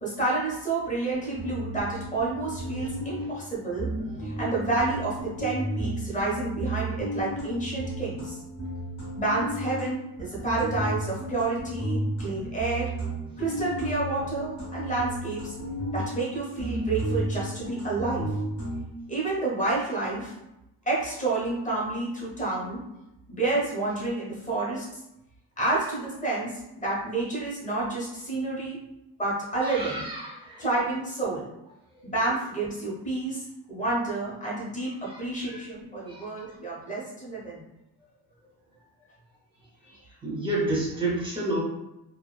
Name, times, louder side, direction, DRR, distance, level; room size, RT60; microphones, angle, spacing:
voice 1, 0.0-3.9 4.2-8.4 9.1-12.9 13.4-15.5 15.9-18.3 19.1-20.3 20.9-22.8 23.3-24.9 25.6-28.8 29.2-30.1 30.6-31.5 32.0-33.4 33.7-37.6 39.8-40.0, right 2 dB, 15° left, -5 dB, 0.8 m, -29 dB
sound 1, 1.1-3.5 3.8-9.9 10.2-16.3 16.6-18.8, right 1 dB, 40° left, 1.0 m, -33 dB
voice 2, 29.6-30.6 32.0-32.1 35.1-35.6 36.1-36.3 40.2-41.6, right 2 dB, 10° right, -4 dB, 0.6 m, -30 dB
2.9 x 2.3 x 2.2 m, 0.91 s
wide cardioid pair, 160°, 44 cm